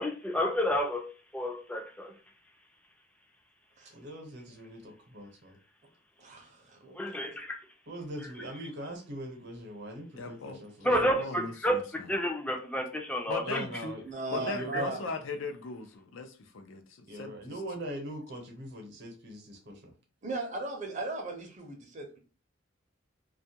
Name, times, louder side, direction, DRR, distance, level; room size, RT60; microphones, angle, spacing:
voice 1, 0.0-2.2 6.9-7.6 10.8-11.8 12.1-13.6 14.7-14.8, equal, 5° left, 0.4 m, -30 dB
voice 2, 3.8-5.6 7.9-10.9 13.4-14.0 14.3-15.0 17.1-19.7, right 1 dB, 65° right, 0.8 m, -41 dB
voice 3, 6.2-7.3 14.0-15.0 20.2-22.2, right 3 dB, 40° right, 0.6 m, -37 dB
voice 4, 10.2-12.1 13.3-14.0 14.3-17.6, left 3 dB, 80° left, 0.5 m, -39 dB
2.3 x 2.2 x 2.7 m
head